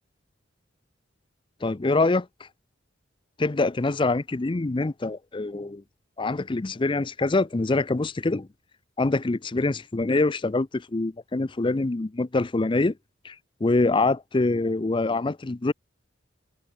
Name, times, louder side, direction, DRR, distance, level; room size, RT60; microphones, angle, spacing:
voice 1, 1.6-2.3 3.4-5.8 6.2-8.5 9.0-12.9 13.2-13.3 13.6-15.7, left 2 dB, 25° left, 0.5 m, -25 dB
head